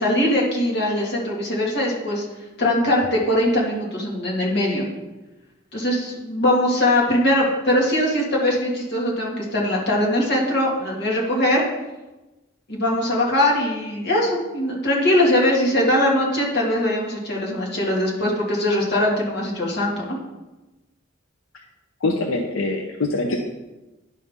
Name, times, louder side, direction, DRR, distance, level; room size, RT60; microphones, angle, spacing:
voice 1, 0.0-2.3 2.6-4.9 5.7-11.6 12.7-20.2, left 1 dB, 55° left, -3 dB, 2.1 m, -21 dB
voice 2, 22.0-23.4, left 2 dB, 90° left, 2 dB, 0.7 m, -23 dB
10.5 x 5.5 x 3.6 m, 1.1 s
head